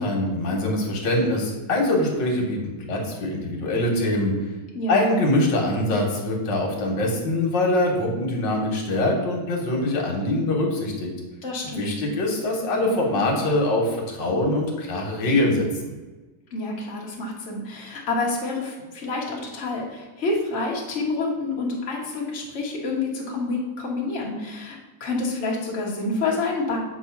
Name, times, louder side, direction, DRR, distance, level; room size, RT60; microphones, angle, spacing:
voice 1, 0.0-2.6 2.9-4.3 4.9-11.1 11.8-15.7, left 1 dB, 90° left, 0 dB, 1.8 m, -23 dB
voice 2, 4.7-5.1 11.4-11.9 16.5-26.8, left 3 dB, 45° left, -3 dB, 1.5 m, -28 dB
7.3 x 2.7 x 5.7 m, 1.2 s
omnidirectional pair, 1.9 m